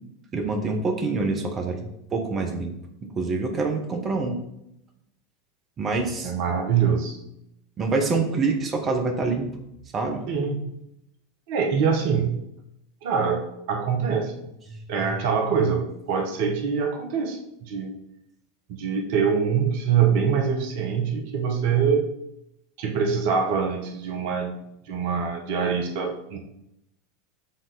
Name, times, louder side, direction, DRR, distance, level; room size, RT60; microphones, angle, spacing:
voice 1, 0.3-2.8 3.2-4.4 5.8-6.3 7.8-9.5 9.9-10.3 14.7-15.1, right 3 dB, 30° right, 3 dB, 1.1 m, -26 dB
voice 2, 6.2-7.2 10.3-10.6 11.5-12.4 13.0-14.3 14.9-17.9 18.7-22.1 22.8-24.6 24.9-26.4, right 6 dB, 55° right, 2 dB, 1.0 m, -24 dB
7.5 x 3.7 x 4.1 m, 0.80 s
figure-of-eight pair, 80°, 0 cm